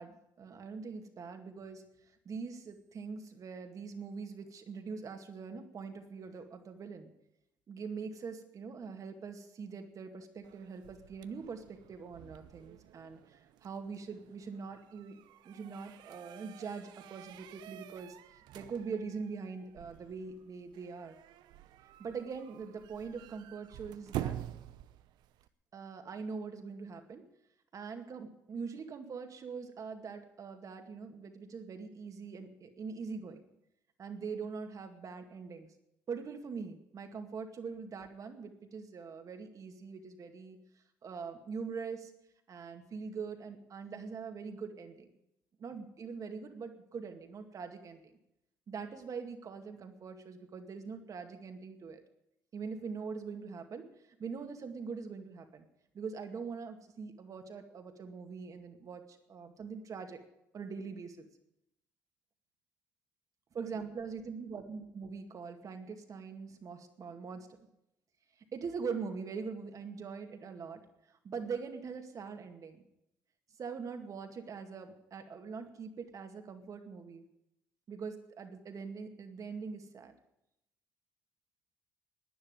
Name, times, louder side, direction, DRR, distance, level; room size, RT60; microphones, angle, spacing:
voice 1, 0.0-1.9 2.3-7.1 7.7-15.2 15.4-21.2 22.0-24.4 25.7-27.3 27.7-33.4 34.0-35.7 36.1-40.6 41.0-42.1 42.5-45.1 45.6-48.1 48.7-52.0 52.5-53.9 54.2-55.6 55.9-60.2 60.5-61.2 63.6-67.5 68.5-70.8 71.1-72.8 73.6-77.3 77.9-80.1, right 5 dB, 50° right, 5 dB, 2.1 m, -43 dB
sound 1, 10.4-25.5, right 12 dB, 80° right, 0.6 m, -48 dB
11.0 x 9.7 x 9.6 m, 0.83 s
supercardioid pair, 75°, 7 cm